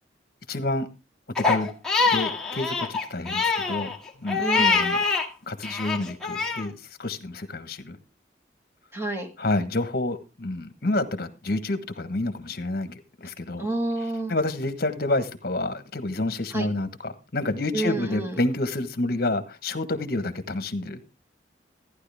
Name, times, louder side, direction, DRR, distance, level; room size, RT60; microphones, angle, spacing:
voice 1, 0.5-0.9 1.4-1.7 2.0-3.9 4.2-5.0 5.5-8.0 9.4-13.7 14.3-21.0, left 2 dB, 55° left, 10 dB, 1.3 m, -29 dB
Crying sobbing, 1.4-5.3 5.6-6.7, left 4 dB, 5° left, 2.0 m, -24 dB
voice 2, 4.4-4.9 8.9-9.3 13.6-14.3 16.5-16.7 17.7-18.4, right 2 dB, 15° right, 3 dB, 2.0 m, -29 dB
14.5 x 10.5 x 3.5 m, 0.29 s
head